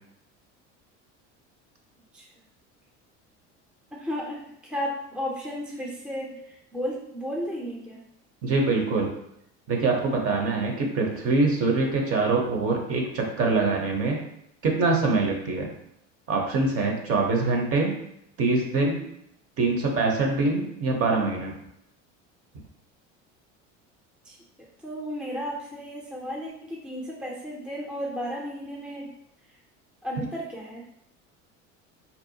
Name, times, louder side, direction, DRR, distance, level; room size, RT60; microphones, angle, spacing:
voice 1, 4.0-8.0 17.4-17.6 24.2-24.4 24.8-29.1 30.0-30.8, equal, 5° right, -3 dB, 0.4 m, -34 dB
voice 2, 8.4-9.1 9.7-14.2 14.6-15.7 16.3-18.0 18.4-19.0 19.6-21.5, right 3 dB, 40° right, 1 dB, 0.7 m, -24 dB
2.6 x 2.1 x 2.7 m, 0.77 s
supercardioid pair, 90°, 36 cm